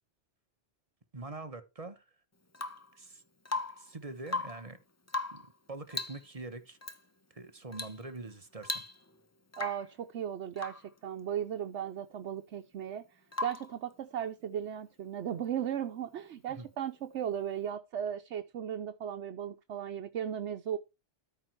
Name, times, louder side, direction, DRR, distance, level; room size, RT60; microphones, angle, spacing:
voice 1, 1.1-2.0 2.9-3.2 3.8-4.8 5.3-6.8 7.3-8.8 16.6-16.7, right 2 dB, 35° right, 1.1 m, -44 dB
Rain / Water tap faucet / Drip, 2.5-2.9 3.4-3.9 4.2-4.7 5.1-5.5 5.9-6.3 6.8-7.0 7.7-8.0 8.3-8.4 8.6-9.2 9.5-9.9 10.6-10.9 13.3-13.8 15.7-15.8, left 3 dB, 20° left, 0.5 m, -37 dB
voice 2, 9.6-13.0 13.4-20.8, right 9 dB, 80° right, 1.0 m, -36 dB
13.0 x 4.4 x 4.5 m
omnidirectional pair, 1.2 m